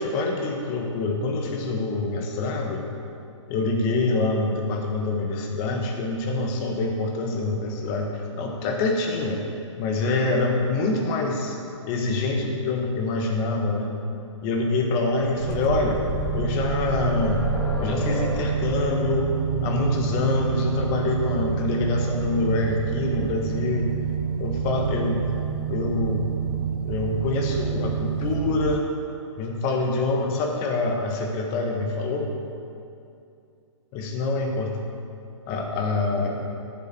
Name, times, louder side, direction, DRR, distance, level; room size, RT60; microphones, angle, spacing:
voice 1, 0.0-2.8 3.5-9.4 9.8-11.5 11.9-13.9 14.4-16.0 16.3-17.4 17.8-19.3 19.6-23.9 24.4-25.2 25.7-26.3 26.8-28.8 29.4-32.3 33.9-34.7 35.5-36.4, left 3 dB, 35° left, 1 dB, 1.5 m, -25 dB
sound 1, 14.9-22.7 23.9-24.0 24.3-24.4, left 1 dB, 10° left, 1.3 m, -33 dB
sound 2, 15.4-28.8, right 8 dB, 45° right, 0.7 m, -28 dB
11.5 x 7.0 x 4.5 m, 2.5 s
hypercardioid pair, 135°, 16 cm